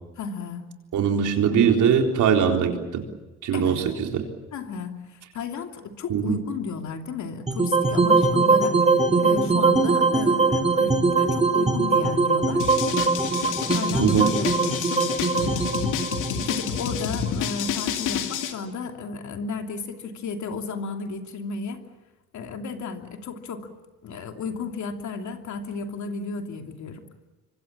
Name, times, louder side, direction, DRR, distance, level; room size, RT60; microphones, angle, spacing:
voice 1, 0.2-0.7 3.5-3.8 4.5-8.8 9.2-12.7 13.3-15.7 16.3-21.8 22.3-23.7 24.0-27.0, left 5 dB, 70° left, 4 dB, 3.0 m, -33 dB
voice 2, 0.9-3.0 3.4-4.3 6.1-6.4 14.0-14.3, right 7 dB, 75° right, 3 dB, 4.0 m, -21 dB
sound 1, 7.5-17.7, right 3 dB, 20° right, 2.8 m, -22 dB
sound 2, 12.6-18.5, left 8 dB, 90° left, 2.5 m, -29 dB
26.0 x 24.5 x 7.3 m, 1.1 s
cardioid pair, 90°, 30 cm